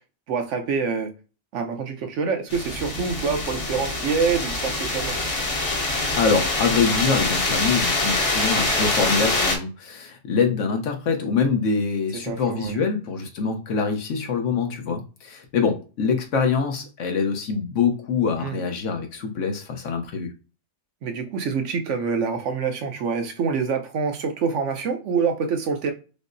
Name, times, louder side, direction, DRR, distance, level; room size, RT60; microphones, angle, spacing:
voice 1, 0.3-1.1 1.5-5.2 12.3-12.8 18.4-18.6 21.0-25.9, right 5 dB, 70° right, 1.0 m, -26 dB
sound 1, 2.5-9.6, left 2 dB, 35° left, 0.7 m, -24 dB
voice 2, 6.2-20.3, left 5 dB, 75° left, 1.2 m, -24 dB
5.3 x 2.0 x 2.6 m
omnidirectional pair, 1.3 m